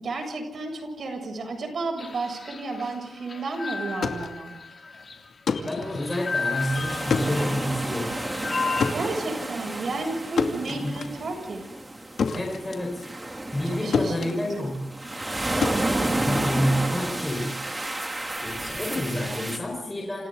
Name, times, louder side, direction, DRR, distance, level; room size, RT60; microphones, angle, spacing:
voice 1, 0.0-4.5 8.9-11.6 13.8-14.3, right 2 dB, 60° right, 3 dB, 7.5 m, -32 dB
sound 1, 2.0-8.9, left 4 dB, 45° left, 3.8 m, -34 dB
sound 2, 3.8-13.7 13.9-16.9, left 5 dB, 75° left, 2.6 m, -31 dB
voice 2, 5.7-8.2 10.7-11.0 12.3-13.0 13.5-14.8 16.2-17.6 18.4-20.3, left 1 dB, 15° left, 0 dB, 4.9 m, -29 dB
sound 3, 6.2-19.6, right 1 dB, 20° right, 2.9 m, -31 dB
29.5 x 28.0 x 4.0 m, 0.95 s
wide cardioid pair, 120°, 0 cm